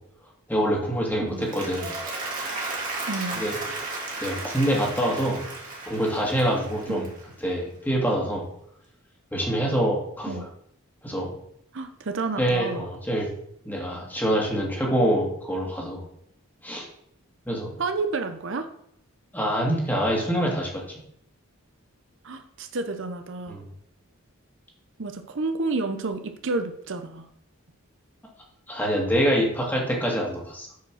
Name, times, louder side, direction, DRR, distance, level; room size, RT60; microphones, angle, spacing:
voice 1, 0.5-1.9 3.3-3.8 4.1-5.4 5.9-7.1 7.4-8.5 9.3-10.5 11.0-11.3 12.4-13.3 13.7-16.1 16.6-16.9 17.5-17.7 19.3-20.8 23.5-23.6 28.7-30.7, equal, 10° left, -2 dB, 1.9 m, -25 dB
Applause, 1.3-7.6, right 2 dB, 40° right, 2.5 m, -34 dB
voice 2, 3.1-3.4 6.9-7.1 10.3-10.5 11.7-12.9 17.8-18.7 22.2-23.6 25.0-27.3, right 3 dB, 55° right, 8 dB, 0.7 m, -30 dB
8.1 x 5.1 x 6.3 m, 0.73 s
head